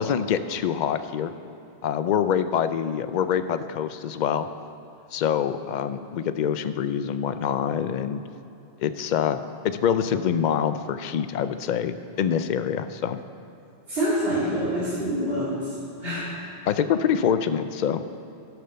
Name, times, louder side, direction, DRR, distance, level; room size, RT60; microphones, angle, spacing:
voice 1, 0.0-1.3 1.8-4.5 5.1-8.2 8.8-9.4 9.6-13.2 16.7-18.0, left 8 dB, 55° left, 11 dB, 0.5 m, -25 dB
voice 2, 13.9-15.7 16.0-16.3, equal, 60° right, -10 dB, 2.5 m, -26 dB
12.5 x 6.0 x 6.7 m, 2.8 s
omnidirectional pair, 1.1 m